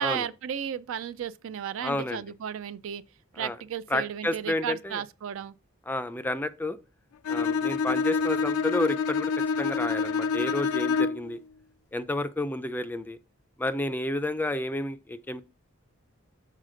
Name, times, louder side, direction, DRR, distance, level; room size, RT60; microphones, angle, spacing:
voice 1, 0.0-3.0 3.3-5.6, right 8 dB, 65° right, 0.3 m, -34 dB
voice 2, 1.8-2.2 3.4-3.6 3.9-5.0 5.9-6.8 7.3-9.3 9.6-11.4 11.9-13.2 13.6-15.4, left 1 dB, 10° left, 0.3 m, -30 dB
Bowed string instrument, 7.2-11.3, left 5 dB, 90° left, 0.4 m, -27 dB
6.5 x 4.1 x 3.7 m
head